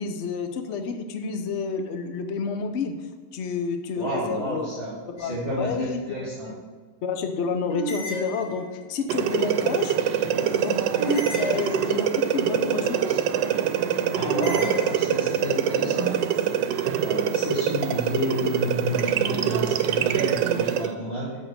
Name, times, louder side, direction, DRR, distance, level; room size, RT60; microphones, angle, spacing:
voice 1, 0.0-2.9 3.3-4.7 5.1-6.0 6.4-6.5 7.0-9.9 10.3-10.8 11.0-13.2, left 5 dB, 55° left, 6 dB, 0.8 m, -29 dB
voice 2, 4.0-6.5 14.1-16.1 17.0-21.5, equal, 35° left, -10 dB, 2.5 m, -30 dB
sound 1, 5.2-5.8 7.7-9.0 11.0-12.3 14.2-15.5, right 2 dB, 70° left, 2.0 m, -34 dB
sound 2, 9.1-20.9, right 9 dB, 90° right, 1.3 m, -24 dB
6.4 x 6.0 x 6.6 m, 1.4 s
omnidirectional pair, 1.9 m